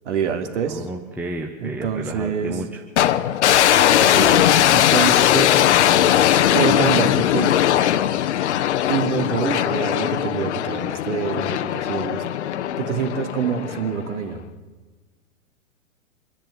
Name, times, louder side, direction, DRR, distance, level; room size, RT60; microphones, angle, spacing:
voice 1, 0.0-0.8 1.6-2.6 4.0-5.5 6.5-7.5 8.9-12.2 12.8-14.4, right 7 dB, 60° right, 6 dB, 2.8 m, -26 dB
voice 2, 0.7-2.8, right 2 dB, 5° right, 2 dB, 1.1 m, -32 dB
sound 1, 3.0-14.2, left 11 dB, 55° left, 1.0 m, -19 dB
25.5 x 10.5 x 9.9 m, 1.4 s
hypercardioid pair, 125°, 41 cm